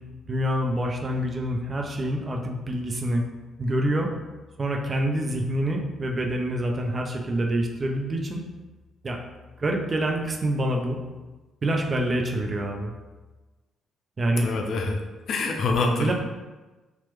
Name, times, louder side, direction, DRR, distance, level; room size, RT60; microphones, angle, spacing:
voice 1, 0.2-3.2 3.6-4.1 4.6-8.4 9.0-9.2 9.6-11.0 11.6-12.9 14.2-14.5 16.0-16.1, right 1 dB, 40° right, 1 dB, 0.5 m, -26 dB
voice 2, 14.4-15.0 15.3-16.1, left 3 dB, 60° left, 2 dB, 0.4 m, -25 dB
2.9 x 2.1 x 3.2 m, 1.2 s
hypercardioid pair, 45°, 0 cm